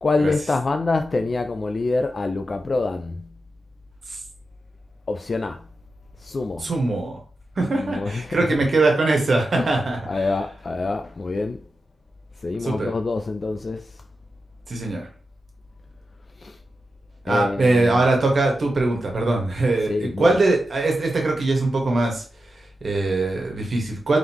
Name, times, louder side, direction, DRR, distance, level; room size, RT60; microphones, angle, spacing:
voice 1, 0.0-3.3 5.1-5.6 6.2-6.7 7.7-8.5 9.6-9.7 10.1-11.6 12.4-13.9 16.4-16.6 17.3-18.0 19.9-20.4, left 3 dB, 45° left, 0.3 m, -25 dB
voice 2, 6.6-7.2 7.6-10.2 12.6-12.9 14.7-15.1 17.2-22.2 22.5-24.2, right 2 dB, 60° right, 1.4 m, -22 dB
3.7 x 3.5 x 3.0 m
cardioid pair, 80°, 0 cm